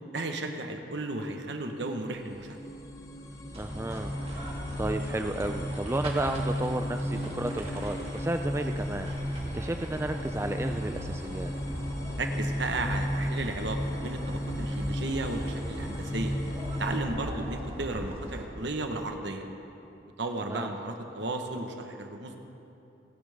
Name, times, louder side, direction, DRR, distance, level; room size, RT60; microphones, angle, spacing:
voice 1, 0.1-2.6 12.2-16.3 16.8-19.5 20.2-22.4, right 2 dB, 65° right, 4 dB, 1.2 m, -34 dB
sound 1, 1.7-17.0, equal, 15° left, 0.8 m, -35 dB
sound 2, 3.5-18.5, equal, 30° right, 1.9 m, -39 dB
voice 2, 3.6-4.5 4.8-11.5 20.5-20.7, right 1 dB, 15° right, 6 dB, 0.3 m, -33 dB
30.0 x 10.5 x 3.6 m, 2.9 s
head